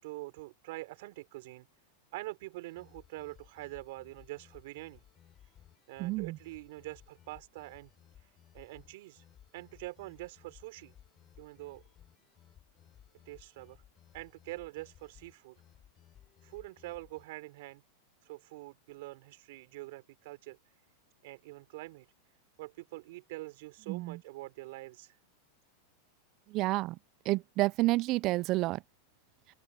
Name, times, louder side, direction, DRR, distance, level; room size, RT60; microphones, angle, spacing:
voice 1, 0.0-1.7 2.1-5.0 5.4-5.5 5.9-7.9 8.2-9.3 9.5-10.9 11.4-11.8 13.3-13.8 14.1-15.6 16.4-17.8 18.2-20.8 21.2-22.1 22.6-25.2, right 20 dB, 65° right, 5.4 m, -45 dB
sound 1, 2.7-17.2, left 10 dB, 30° left, 8.0 m, -60 dB
voice 2, 6.0-6.4 23.9-24.2 26.5-27.0 27.3-28.8, right 20 dB, 45° right, 0.4 m, -29 dB
open air
supercardioid pair, 125°, 0 cm